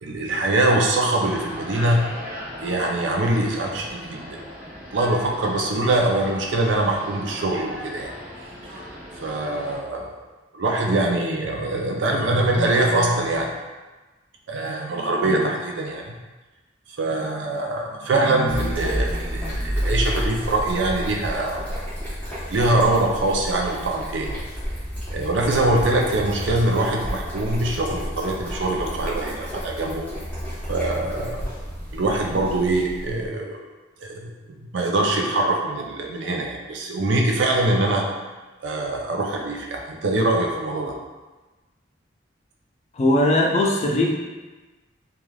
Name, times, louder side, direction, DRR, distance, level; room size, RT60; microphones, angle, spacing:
voice 1, 0.0-2.0 2.6-4.2 4.9-8.1 9.2-10.1 10.5-13.5 14.5-16.1 17.0-21.6 22.5-24.4 25.1-30.1 30.7-31.5 31.9-33.6 34.0-38.1 38.6-40.9, right 2 dB, 65° right, 0 dB, 0.4 m, -23 dB
sound 1, 1.2-9.8, equal, 40° right, 0.9 m, -38 dB
sound 2, 18.5-33.3, equal, 10° left, 1.0 m, -30 dB
voice 2, 42.9-44.1, left 1 dB, 35° left, 0 dB, 0.3 m, -19 dB
3.2 x 2.3 x 2.3 m, 1.2 s
head